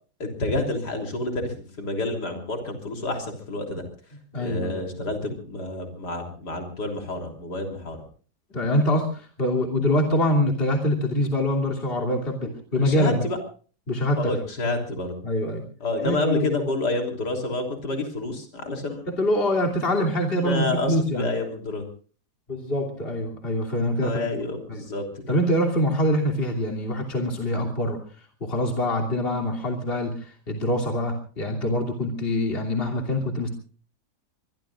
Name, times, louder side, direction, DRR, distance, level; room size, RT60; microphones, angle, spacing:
voice 1, 0.2-3.8 4.4-8.0 12.4-13.4 14.2-15.2 15.8-19.0 20.4-21.8 24.0-25.4, left 2 dB, 85° left, 3 dB, 4.0 m, -29 dB
voice 2, 4.3-4.8 8.5-13.3 13.9-14.3 15.2-15.6 16.0-16.7 19.1-21.3 22.5-24.3 24.7-24.8 25.3-33.5, left 1 dB, 35° left, 1 dB, 3.2 m, -24 dB
24.0 x 23.5 x 2.5 m, 0.40 s
omnidirectional pair, 1.8 m